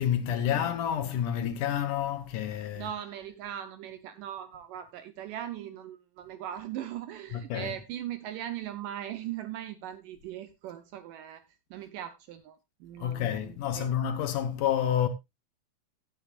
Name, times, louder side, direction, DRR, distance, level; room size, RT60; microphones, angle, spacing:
voice 1, 0.0-3.0 7.3-7.8 13.0-15.1, left 9 dB, 70° left, 2.3 m, -29 dB
voice 2, 2.7-11.4 11.7-13.9, right 11 dB, 75° right, 2.2 m, -39 dB
16.5 x 8.9 x 2.4 m
omnidirectional pair, 4.2 m